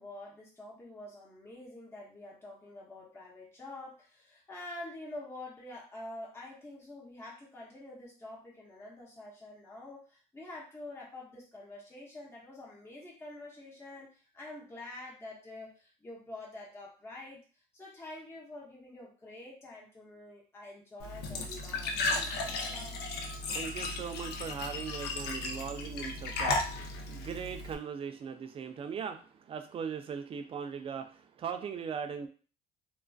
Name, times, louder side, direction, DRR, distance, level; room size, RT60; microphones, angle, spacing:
voice 1, 0.0-23.1, left 2 dB, 15° left, -4 dB, 0.7 m, -47 dB
Glass / Trickle dribble / Fill (with liquid), 21.0-27.7, left 2 dB, 75° left, 0.5 m, -35 dB
voice 2, 23.4-32.3, right 6 dB, 35° right, 7 dB, 0.4 m, -39 dB
2.3 x 2.3 x 2.3 m, 0.38 s
cardioid pair, 110°, 17 cm